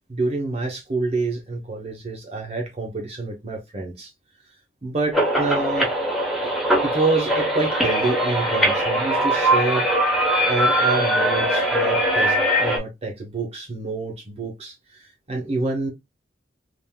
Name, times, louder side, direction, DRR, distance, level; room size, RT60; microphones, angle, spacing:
voice 1, 0.1-4.1 4.8-5.9 6.4-6.5 6.8-9.9 10.5-15.9, right 3 dB, 35° right, 0.8 m, -27 dB
sound 1, 5.1-12.8, right 1 dB, ahead, 0.9 m, -21 dB
3.4 x 2.5 x 2.2 m
head